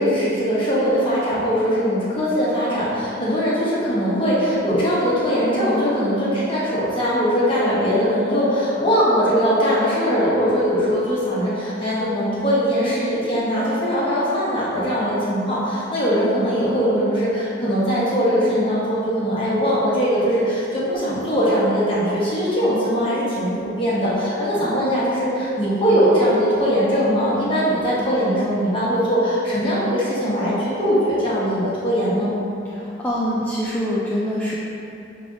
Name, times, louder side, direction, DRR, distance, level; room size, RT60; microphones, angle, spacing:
voice 1, 0.0-32.3, equal, 25° left, -8 dB, 1.1 m, -21 dB
voice 2, 32.7-34.5, equal, 10° left, -7 dB, 0.3 m, -24 dB
6.0 x 3.3 x 2.6 m, 2.8 s
head